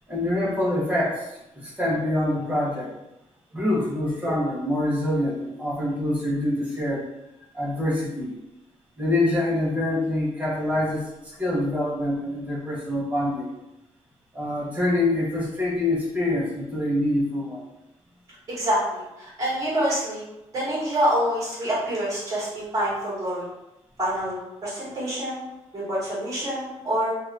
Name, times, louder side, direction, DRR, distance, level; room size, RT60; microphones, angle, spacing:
voice 1, 0.1-1.3 1.5-2.9 3.5-7.1 7.5-8.3 9.0-11.1 11.4-13.5 14.3-17.6, left 1 dB, 10° right, -5 dB, 0.9 m, -25 dB
voice 2, 18.5-20.3 20.5-23.4 24.0-27.1, equal, 30° right, -8 dB, 1.4 m, -26 dB
2.7 x 2.4 x 3.2 m, 0.92 s
wide cardioid pair, 160°, 12 cm